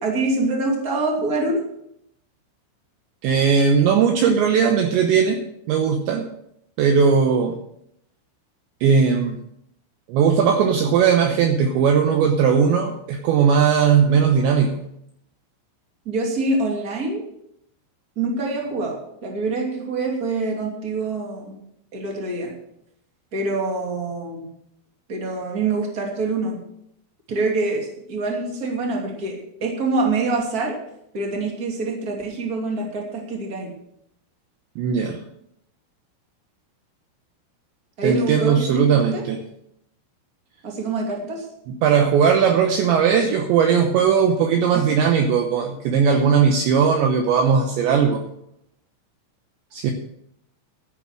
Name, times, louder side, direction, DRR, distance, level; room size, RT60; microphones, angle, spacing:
voice 1, 0.0-1.6 16.0-17.2 18.2-21.6 21.9-22.5 23.3-24.5 25.1-26.6 27.3-30.8 31.1-33.7 38.0-39.2 40.6-41.4, right 3 dB, 25° right, 0 dB, 2.0 m, -25 dB
voice 2, 3.2-6.3 6.8-7.6 8.8-9.4 10.1-14.8 34.8-35.2 38.0-39.4 41.7-48.2 49.7-49.9, right 6 dB, 75° right, 4 dB, 2.9 m, -18 dB
12.5 x 9.3 x 6.3 m, 0.75 s
omnidirectional pair, 5.8 m